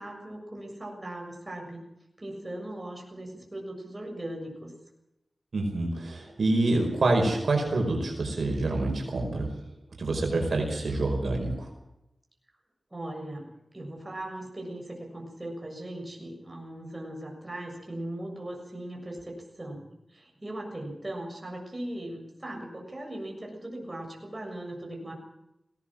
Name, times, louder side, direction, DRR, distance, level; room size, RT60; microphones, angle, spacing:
voice 1, 0.0-1.8 2.2-4.7 12.9-13.5 13.7-19.9 20.1-25.1, right 1 dB, 25° right, 0 dB, 7.1 m, -39 dB
voice 2, 5.5-9.5 10.0-11.7, right 2 dB, 75° right, 2 dB, 5.2 m, -27 dB
19.5 x 18.0 x 7.5 m, 0.87 s
wide cardioid pair, 80°, 0 cm